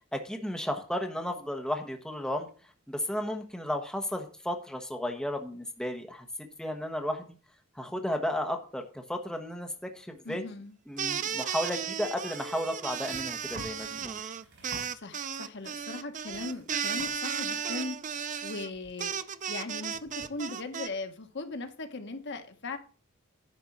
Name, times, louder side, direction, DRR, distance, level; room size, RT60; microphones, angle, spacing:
voice 1, 0.1-2.5 2.9-7.4 7.8-10.4 10.9-14.2, left 1 dB, 5° left, 4 dB, 1.2 m, -34 dB
voice 2, 10.2-10.8 14.9-18.0 18.4-22.8, left 3 dB, 60° left, 7 dB, 1.3 m, -39 dB
sound 1, 11.0-20.9, right 8 dB, 40° right, 0.5 m, -35 dB
sound 2, 13.1-15.3 15.8-16.0 16.3-17.2 18.2-18.3, right 1 dB, 60° right, 4.2 m, -47 dB
10.5 x 4.4 x 7.4 m, 0.38 s
head